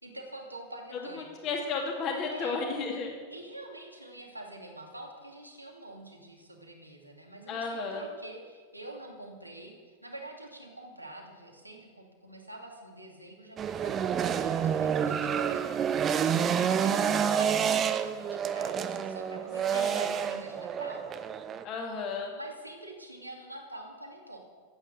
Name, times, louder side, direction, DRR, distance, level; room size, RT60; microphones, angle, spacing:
voice 1, 0.0-1.3 2.3-2.6 3.3-21.1 22.4-24.4, right 1 dB, 85° right, 0 dB, 2.6 m, -46 dB
voice 2, 1.1-3.1 7.5-8.0 19.7-20.0 21.6-22.3, left 4 dB, 35° left, 1 dB, 2.4 m, -33 dB
sound 1, 13.6-21.6, right 8 dB, 25° right, 0.8 m, -28 dB
14.5 x 8.6 x 8.2 m, 1.6 s
figure-of-eight pair, 90°, 0 cm